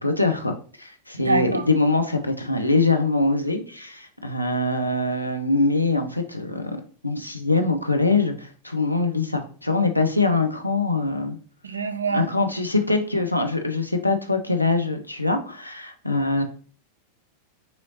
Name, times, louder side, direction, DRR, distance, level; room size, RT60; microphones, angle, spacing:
voice 1, 0.0-6.8 7.0-11.4 12.1-16.4, left 3 dB, 90° left, 4 dB, 0.5 m, -23 dB
voice 2, 1.2-1.6 11.6-12.3, right 4 dB, 75° right, 9 dB, 0.5 m, -25 dB
5.6 x 3.1 x 2.8 m, 0.40 s
figure-of-eight pair, 90°, 0 cm